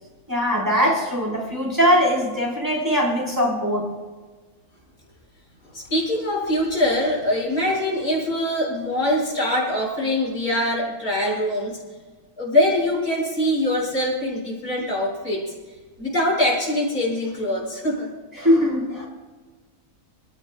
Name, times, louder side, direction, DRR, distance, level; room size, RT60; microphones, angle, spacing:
voice 1, 0.3-3.9 18.3-19.1, equal, 10° right, -3 dB, 4.0 m, -21 dB
voice 2, 5.7-11.8 12.4-15.5 16.0-18.1, left 1 dB, 85° left, -2 dB, 6.0 m, -23 dB
27.5 x 15.5 x 2.2 m, 1.4 s
omnidirectional pair, 1.5 m